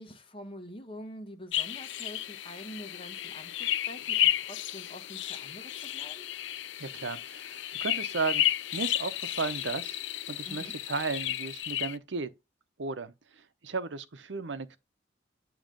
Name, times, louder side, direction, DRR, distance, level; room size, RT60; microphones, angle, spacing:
voice 1, 0.0-6.3 10.4-10.7, equal, 30° left, 1.2 m, -46 dB
sound 1, 1.5-12.0, left 12 dB, 85° left, 0.4 m, -32 dB
voice 2, 6.8-8.4 8.7-10.0 10.3-12.3 12.8-14.8, right 4 dB, 85° right, 0.8 m, -35 dB
9.0 x 3.0 x 5.2 m
head